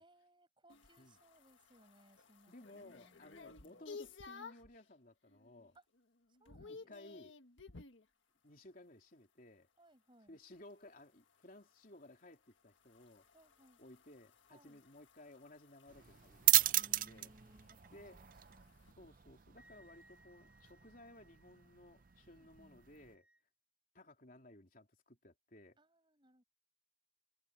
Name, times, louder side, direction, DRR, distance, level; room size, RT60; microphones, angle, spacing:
voice 1, 0.0-3.8 5.7-5.8 6.4-6.9 9.8-10.4 13.3-13.8 14.5-14.8 16.7-18.8 22.3-22.8 25.8-26.4, right 1 dB, 25° right, 5.9 m, -66 dB
sound 1, 0.7-4.8 5.3-5.7 6.0-8.1 10.5-18.9, left 4 dB, 80° left, 1.6 m, -57 dB
voice 2, 2.5-5.8 6.7-7.3 8.4-9.7 10.3-13.3 13.8-17.3 17.9-18.3 19.0-23.3 23.9-25.8, left 1 dB, 45° left, 3.5 m, -58 dB
sound 2, 15.9-23.1, right 15 dB, 45° right, 0.5 m, -37 dB
Wind instrument woodwind instrument, 19.6-23.4, right 1 dB, 5° right, 5.2 m, -69 dB
head